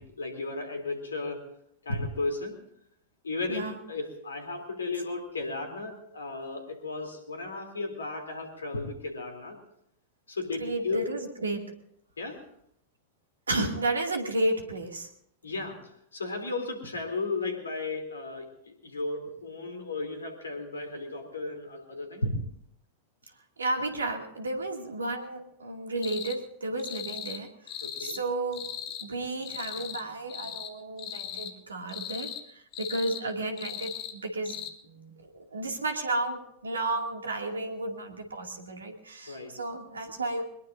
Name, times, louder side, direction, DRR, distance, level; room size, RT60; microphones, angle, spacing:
voice 1, 0.0-1.5 1.8-2.6 3.2-9.6 10.3-11.1 12.2-12.4 15.4-22.4 27.8-28.2 34.8-35.1 39.3-39.6, left 3 dB, 75° left, 5 dB, 3.2 m, -34 dB
voice 2, 10.6-11.7 13.5-15.1 23.6-27.7 28.0-28.7 29.0-34.6 35.2-40.4, right 2 dB, 75° right, 3 dB, 2.5 m, -32 dB
sound 1, 26.0-26.4 26.8-27.4 27.7-28.2 28.5-29.1 29.4-30.0 30.3-30.7 31.0-31.5 31.9-32.4 32.7-33.2 33.6-34.1 34.4-34.7, left 10 dB, 40° left, 1.5 m, -38 dB
22.5 x 21.0 x 2.7 m, 0.73 s
figure-of-eight pair, 90°, 0 cm